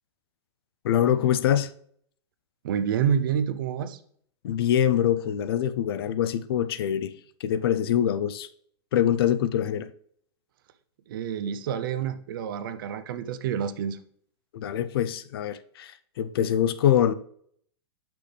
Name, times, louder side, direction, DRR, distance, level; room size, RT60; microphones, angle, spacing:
voice 1, 0.8-1.7 4.4-7.1 7.4-8.5 8.9-9.9 14.5-17.1, left 10 dB, 60° left, 0.5 m, -24 dB
voice 2, 2.6-4.0 11.1-14.0, right 8 dB, 55° right, 0.6 m, -28 dB
6.9 x 6.0 x 3.4 m
supercardioid pair, 175°, 14 cm